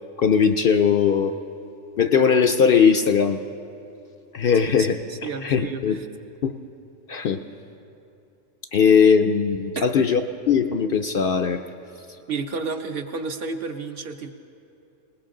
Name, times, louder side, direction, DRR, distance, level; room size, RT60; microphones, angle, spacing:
voice 1, 0.2-1.3 2.0-3.4 4.3-5.0 5.4-5.9 6.4-6.5 7.1-7.4 8.7-10.2 10.5-11.6, left 6 dB, 60° left, 7 dB, 0.6 m, -19 dB
voice 2, 4.8-6.1 9.8-9.9 12.3-14.3, right 4 dB, 55° right, 6 dB, 0.9 m, -31 dB
20.0 x 19.0 x 3.8 m, 2.8 s
omnidirectional pair, 1.3 m